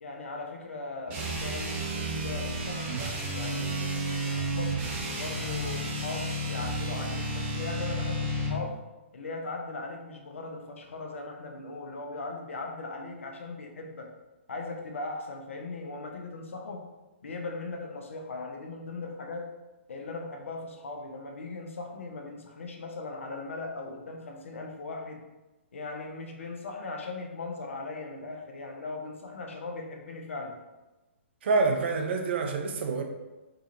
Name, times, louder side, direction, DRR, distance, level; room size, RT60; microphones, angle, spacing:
voice 1, 0.0-4.8 5.2-8.8 9.1-14.2 14.5-16.9 17.2-19.6 19.9-25.2 25.7-30.6, left 3 dB, 75° left, 2 dB, 0.6 m, -39 dB
sound 1, 1.1-8.6, right 1 dB, 30° right, 0.9 m, -32 dB
voice 2, 31.4-33.0, right 4 dB, 55° right, 4 dB, 0.5 m, -27 dB
3.9 x 2.8 x 2.5 m, 1.1 s
hypercardioid pair, 130°, 7 cm